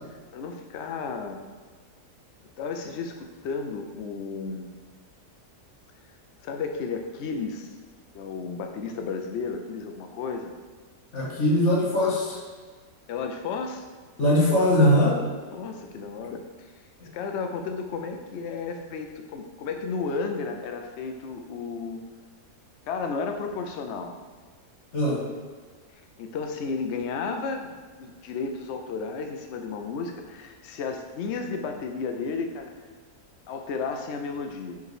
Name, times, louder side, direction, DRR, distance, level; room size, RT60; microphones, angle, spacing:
voice 1, 0.3-1.4 2.6-4.7 6.4-7.7 8.1-10.5 13.1-13.8 15.5-16.4 17.1-22.0 22.9-24.2 26.0-27.7 28.0-32.7 33.5-34.8, left 4 dB, 80° left, 4 dB, 0.6 m, -33 dB
voice 2, 11.1-12.4 14.2-15.2 24.9-25.2, left 1 dB, 45° left, -4 dB, 1.8 m, -21 dB
5.0 x 3.9 x 4.8 m, 1.5 s
omnidirectional pair, 1.8 m